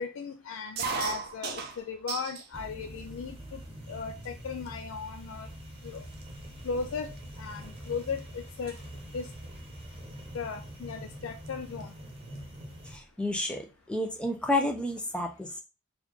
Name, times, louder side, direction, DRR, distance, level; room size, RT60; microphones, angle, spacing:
voice 1, 0.0-3.6 3.9-5.5 5.8-6.1 6.6-7.1 7.4-8.8 9.1-9.3 10.3-11.9, left 5 dB, 80° left, 0.4 m, -36 dB
sound 1, 0.8-2.5 2.9-3.6 4.2-4.3 4.6-5.0 5.6-5.7 5.9-8.2 8.5-8.8 10.1-10.4 11.5-11.6 11.8-11.9 12.2-13.0, right 5 dB, 50° right, 0.5 m, -38 dB
sound 2, 2.5-13.0, equal, 30° right, 0.9 m, -44 dB
voice 2, 12.9-15.6, left 1 dB, 5° left, 0.5 m, -31 dB
4.0 x 2.4 x 3.1 m
head